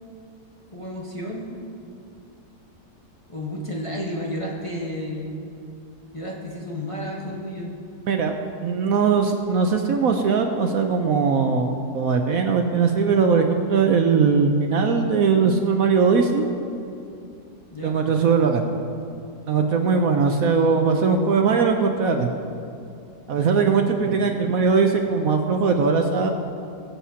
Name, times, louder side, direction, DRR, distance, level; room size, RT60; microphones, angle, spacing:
voice 1, 0.7-1.6 3.3-5.3 6.1-7.7 17.7-18.0 24.0-24.5, equal, 20° left, -4 dB, 1.2 m, -32 dB
voice 2, 8.6-16.4 17.8-18.6 19.5-22.3 23.3-26.3, right 5 dB, 65° right, 4 dB, 1.0 m, -20 dB
20.5 x 7.3 x 2.8 m, 2.6 s
omnidirectional pair, 1.7 m